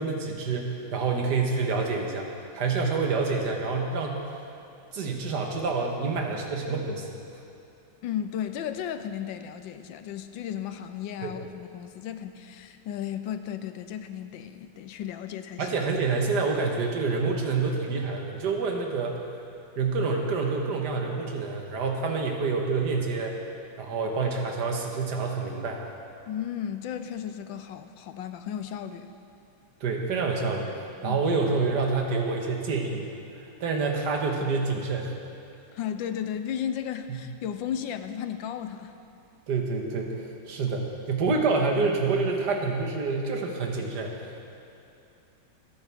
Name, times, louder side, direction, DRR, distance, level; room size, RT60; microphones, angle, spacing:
voice 1, 0.0-2.3 2.5-4.2 4.9-7.1 11.2-11.3 15.6-19.2 19.8-23.4 23.8-25.8 29.8-30.7 31.0-33.1 33.6-35.1 37.1-37.2 39.5-40.1 40.5-44.3, right 4 dB, 60° right, 1 dB, 1.8 m, -27 dB
voice 2, 8.0-15.7 26.3-29.1 31.0-31.2 35.7-38.9, left 9 dB, 75° left, 9 dB, 1.3 m, -34 dB
21.5 x 10.5 x 3.5 m, 2.7 s
omnidirectional pair, 2.2 m